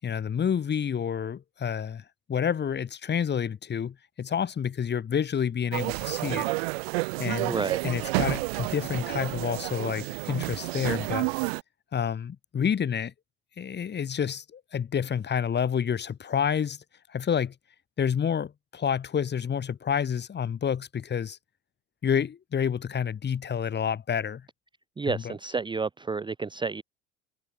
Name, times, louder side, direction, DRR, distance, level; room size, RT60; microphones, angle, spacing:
voice 1, 0.0-6.5 7.2-7.6 7.8-11.3 11.9-13.1 13.6-16.8 17.1-17.5 18.0-21.4 22.0-24.5 25.1-25.3, left 8 dB, 30° left, 4.8 m, -29 dB
sound 1, 5.7-11.6, right 26 dB, 60° right, 3.2 m, -30 dB
voice 2, 7.5-7.8 25.0-26.8, right 4 dB, 15° right, 1.0 m, -30 dB
figure-of-eight pair, 70°, 35 cm